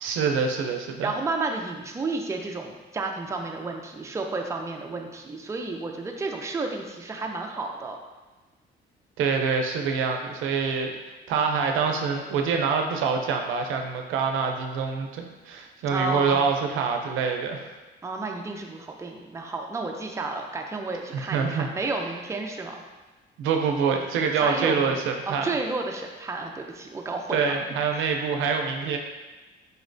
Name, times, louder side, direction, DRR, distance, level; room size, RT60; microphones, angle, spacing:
voice 1, 0.0-1.1 9.2-10.9 11.3-17.7 21.1-21.7 23.4-25.5 27.3-29.0, right 5 dB, 85° right, 3 dB, 0.5 m, -25 dB
voice 2, 1.0-8.0 15.9-16.5 18.0-22.8 24.3-25.0 25.3-27.5 27.9-28.1, right 3 dB, 15° right, 2 dB, 0.4 m, -31 dB
4.4 x 3.0 x 2.5 m, 1.2 s
cardioid pair, 90°, 20 cm